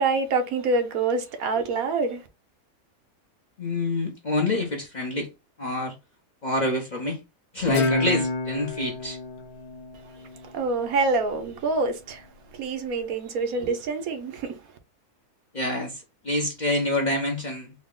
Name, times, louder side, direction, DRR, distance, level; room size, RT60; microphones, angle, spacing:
voice 1, 0.0-2.2 10.4-12.2 12.5-14.6, right 3 dB, 75° right, 1.2 m, -26 dB
voice 2, 3.6-5.3 5.6-5.9 6.4-7.2 7.5-9.2 15.5-17.7, left 1 dB, 40° left, 0.6 m, -27 dB
Guitar, 7.7-10.9, left 3 dB, 85° left, 1.2 m, -28 dB
4.0 x 2.1 x 3.6 m
omnidirectional pair, 1.6 m